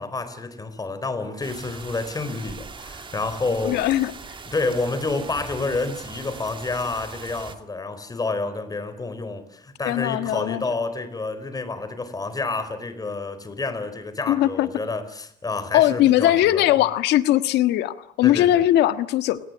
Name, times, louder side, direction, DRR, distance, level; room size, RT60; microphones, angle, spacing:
voice 1, 0.0-3.9 4.5-16.6 18.2-18.6, left 3 dB, 20° left, 4.6 m, -29 dB
sound 1, 1.4-7.6, right 5 dB, 30° right, 2.4 m, -40 dB
voice 2, 3.6-4.1 9.8-10.6 14.3-14.7 15.7-19.4, left 13 dB, 85° left, 1.7 m, -20 dB
30.0 x 19.0 x 9.6 m
cardioid pair, 110°, 17 cm